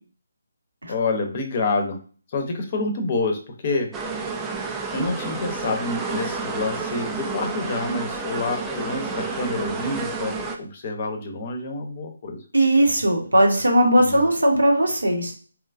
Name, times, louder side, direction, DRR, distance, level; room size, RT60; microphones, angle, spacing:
voice 1, 0.9-2.0 2.3-3.9 4.9-12.4 14.0-14.2, left 3 dB, 40° left, 4 dB, 0.6 m, -27 dB
sound 1, 3.9-10.6, right 4 dB, 10° right, 0.3 m, -30 dB
voice 2, 12.5-15.3, right 1 dB, 80° right, 1 dB, 0.9 m, -18 dB
2.9 x 2.3 x 2.4 m, 0.40 s
figure-of-eight pair, 150°, 0 cm